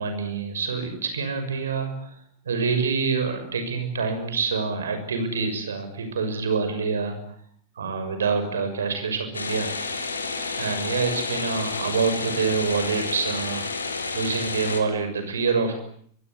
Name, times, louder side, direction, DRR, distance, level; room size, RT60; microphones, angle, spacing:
voice 1, 0.0-2.1 2.4-7.2 7.8-9.7 10.6-13.7 14.1-15.7, right 5 dB, 70° right, 8 dB, 6.5 m, -26 dB
sound 1, 9.3-14.8, left 4 dB, 75° left, 4.1 m, -30 dB
24.5 x 24.0 x 9.9 m, 0.64 s
figure-of-eight pair, 90°, 0 cm